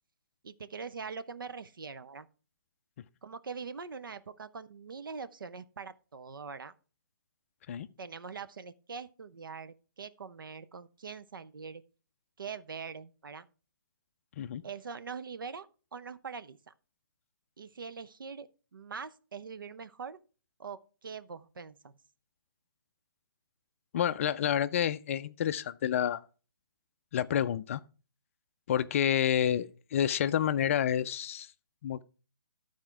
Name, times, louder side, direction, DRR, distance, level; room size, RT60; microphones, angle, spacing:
voice 1, 0.4-2.3 3.2-6.7 8.0-11.8 12.4-13.5 14.6-16.7 17.6-20.2 20.6-22.0, right 5 dB, 70° right, 0.7 m, -43 dB
voice 2, 23.9-26.2 27.1-27.8 28.7-31.5 31.8-32.0, left 9 dB, 40° left, 0.4 m, -29 dB
11.5 x 4.4 x 4.6 m
figure-of-eight pair, 140°, 12 cm